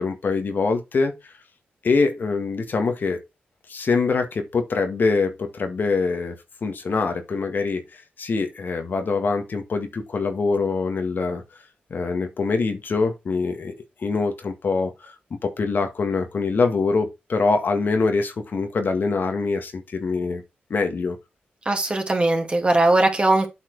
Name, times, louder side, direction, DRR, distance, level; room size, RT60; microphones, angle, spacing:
voice 1, 0.0-1.3 1.8-3.2 3.7-6.3 6.6-11.4 11.9-20.4 20.7-21.2, left 4 dB, 60° left, 1.7 m, -24 dB
voice 2, 21.7-23.5, right 2 dB, 30° right, 2.7 m, -19 dB
8.4 x 4.6 x 4.6 m
cardioid pair, 65°, 4 cm